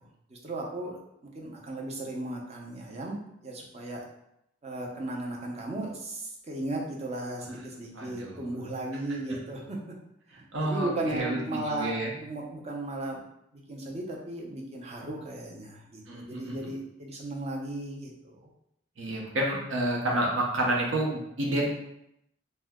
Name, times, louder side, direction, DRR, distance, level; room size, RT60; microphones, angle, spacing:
voice 1, 0.0-4.0 4.6-9.8 10.3-13.2 13.7-18.5, right 2 dB, 35° right, -1 dB, 0.6 m, -36 dB
voice 2, 7.9-8.4 10.5-12.1 16.1-16.7 19.0-21.8, right 1 dB, 80° right, -1 dB, 0.8 m, -29 dB
2.7 x 2.1 x 3.5 m, 0.79 s
head